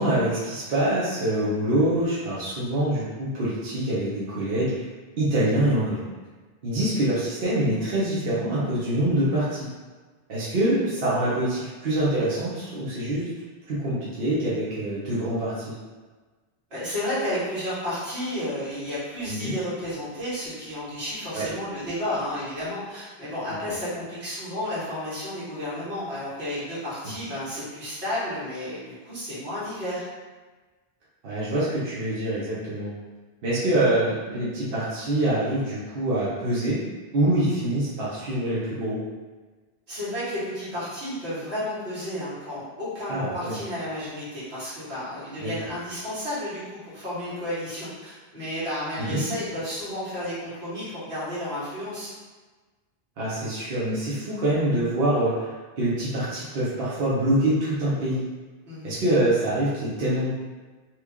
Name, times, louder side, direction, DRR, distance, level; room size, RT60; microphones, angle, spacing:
voice 1, 0.0-4.9 5.2-6.0 6.6-9.7 10.3-13.3 13.7-15.7 19.3-19.6 21.3-21.4 31.2-32.9 33.4-36.8 37.1-39.0 43.1-43.6 45.4-45.5 49.0-49.2 53.2-55.5 55.8-58.2 58.8-60.3, right 1 dB, 65° right, -9 dB, 1.0 m, -25 dB
voice 2, 16.7-30.0 39.9-52.1 58.7-58.9, left 1 dB, 90° right, -11 dB, 1.7 m, -32 dB
3.0 x 2.4 x 3.5 m, 1.3 s
omnidirectional pair, 1.1 m